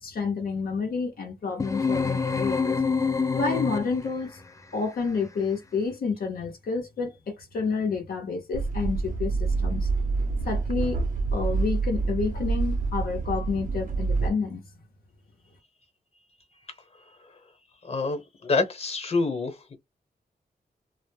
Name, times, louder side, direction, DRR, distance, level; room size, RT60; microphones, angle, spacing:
voice 1, 0.0-2.8 3.3-4.4 4.7-9.9 10.4-11.0 11.3-14.6, left 4 dB, 70° left, 0.6 m, -29 dB
sound 1, 1.6-4.2, left 5 dB, 20° left, 0.4 m, -26 dB
sound 2, 8.5-14.3, right 3 dB, 60° right, 0.6 m, -27 dB
voice 2, 17.8-19.8, left 3 dB, 40° left, 0.9 m, -27 dB
2.1 x 2.0 x 3.1 m
wide cardioid pair, 95°, 16 cm